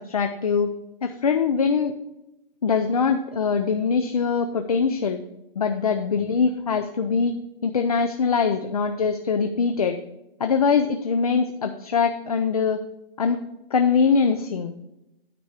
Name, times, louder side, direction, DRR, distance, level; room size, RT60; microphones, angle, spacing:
voice 1, 0.1-0.7 1.0-1.9 2.6-5.2 5.6-7.3 7.6-10.0 10.4-12.8 13.2-13.4 13.7-14.7, left 5 dB, 40° left, 7 dB, 0.4 m, -22 dB
9.4 x 4.7 x 5.5 m, 0.90 s
hypercardioid pair, 175°, 30 cm